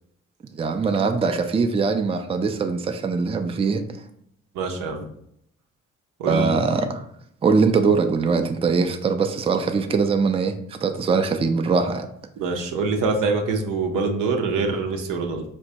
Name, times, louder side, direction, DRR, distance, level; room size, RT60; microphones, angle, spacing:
voice 1, 0.5-3.8 6.3-7.0 7.4-12.1, right 4 dB, 20° right, 6 dB, 0.4 m, -22 dB
voice 2, 4.5-5.1 6.2-6.6 12.4-15.4, right 4 dB, 75° right, 3 dB, 0.6 m, -24 dB
4.3 x 2.1 x 2.8 m, 0.71 s
hypercardioid pair, 45°, 32 cm